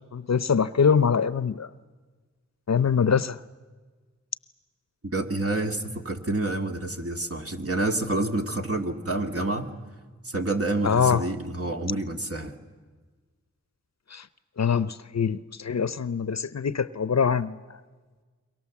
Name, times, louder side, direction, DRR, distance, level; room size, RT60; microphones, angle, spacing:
voice 1, 0.1-1.7 2.7-3.4 10.8-11.2 14.1-14.3 14.6-17.6, left 6 dB, 60° left, 16 dB, 0.7 m, -23 dB
voice 2, 5.1-9.7 10.2-12.5, right 2 dB, 50° right, 3 dB, 2.2 m, -28 dB
27.5 x 23.0 x 7.3 m, 1.4 s
cardioid pair, 45°, 31 cm